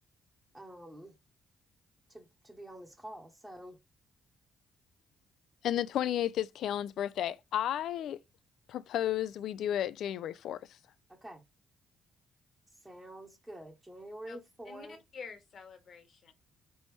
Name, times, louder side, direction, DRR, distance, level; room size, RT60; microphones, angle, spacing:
voice 1, 0.5-1.1 2.1-3.8 11.1-11.4 12.7-15.0, right 1 dB, 10° right, 0.9 m, -47 dB
voice 2, 5.6-8.2 8.7-10.8, left 11 dB, 75° left, 0.3 m, -33 dB
voice 3, 14.6-16.3, left 5 dB, 55° left, 1.3 m, -48 dB
4.0 x 3.4 x 3.1 m
cardioid pair, 90°, 0 cm